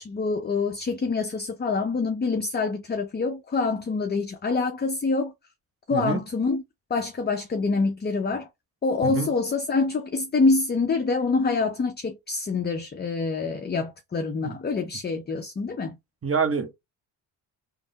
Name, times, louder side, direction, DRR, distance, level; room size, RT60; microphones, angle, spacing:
voice 1, 0.0-5.3 5.9-6.6 6.9-8.5 8.8-16.0, left 4 dB, 20° left, 0.5 m, -26 dB
voice 2, 5.9-6.2 9.0-9.3 14.4-14.6 16.2-16.7, right 5 dB, 30° right, 0.9 m, -26 dB
3.3 x 2.0 x 2.7 m
supercardioid pair, 50°, 49 cm